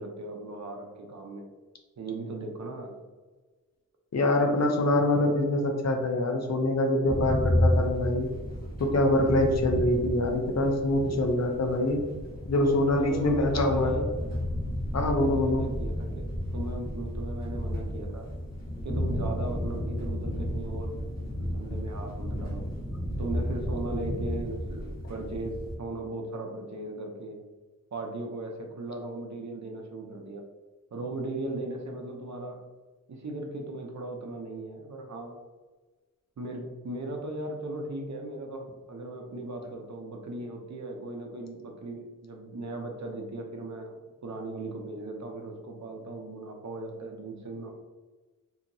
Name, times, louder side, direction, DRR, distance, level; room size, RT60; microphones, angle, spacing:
voice 1, 0.0-1.4 2.0-2.9 12.6-14.1 15.2-18.3 18.8-21.0 21.4-22.7 23.2-27.4 27.9-30.4 30.9-32.6 33.1-35.4 36.4-47.7, right 2 dB, 55° right, 2 dB, 0.6 m, -37 dB
voice 2, 4.1-8.3 8.8-12.0 12.5-14.1 14.9-15.7, left 1 dB, 50° left, 3 dB, 0.6 m, -25 dB
sound 1, 7.1-25.7, equal, 25° left, 1.2 m, -32 dB
2.8 x 2.8 x 2.6 m, 1.3 s
wide cardioid pair, 80°, 33 cm